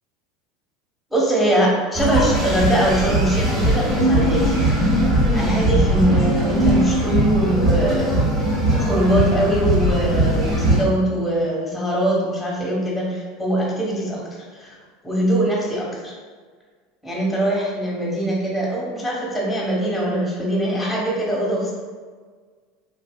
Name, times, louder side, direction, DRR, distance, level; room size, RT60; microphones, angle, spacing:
voice 1, 1.1-4.5 5.3-8.5 8.7-14.2 14.5-14.7 15.0-16.1 17.0-21.7, right 1 dB, 5° left, -4 dB, 1.3 m, -22 dB
sound 1, 1.9-10.8, right 1 dB, 25° right, 1.1 m, -19 dB
3.2 x 2.6 x 2.3 m, 1.6 s
supercardioid pair, 100°, 0 cm